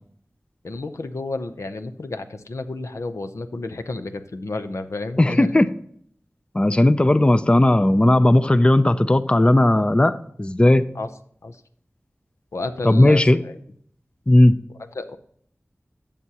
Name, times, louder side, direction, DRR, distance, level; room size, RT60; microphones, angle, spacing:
voice 1, 0.6-5.5 10.9-11.1 11.4-11.6 12.5-13.6 14.8-15.2, left 2 dB, 85° left, 8 dB, 0.7 m, -31 dB
voice 2, 5.2-5.7 6.5-10.8 12.8-13.4 14.3-14.6, left 1 dB, 20° left, 13 dB, 0.4 m, -16 dB
12.0 x 7.0 x 2.9 m, 0.64 s
wide cardioid pair, 60°, 5 cm